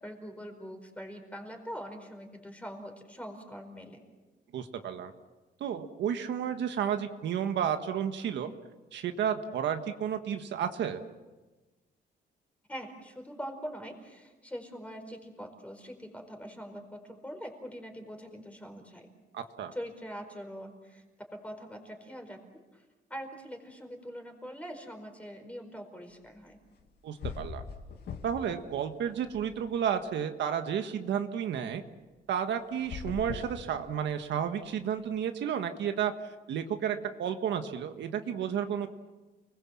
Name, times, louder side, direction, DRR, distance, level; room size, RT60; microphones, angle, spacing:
voice 1, 0.0-4.0 12.7-19.1 19.7-21.0 21.3-22.4 22.7-22.8 23.1-26.6, equal, 5° left, 4 dB, 4.8 m, -43 dB
voice 2, 4.5-5.1 5.6-8.5 8.9-11.0 19.3-19.7 27.0-27.6 28.2-31.8 32.3-36.1 36.5-38.9, right 8 dB, 80° right, 7 dB, 1.6 m, -32 dB
sound 1, 26.8-26.9 27.2-28.5 28.9-30.0 32.7-34.3, left 6 dB, 60° left, 2.8 m, -41 dB
30.0 x 21.0 x 7.5 m, 1.2 s
cardioid pair, 150°, 19 cm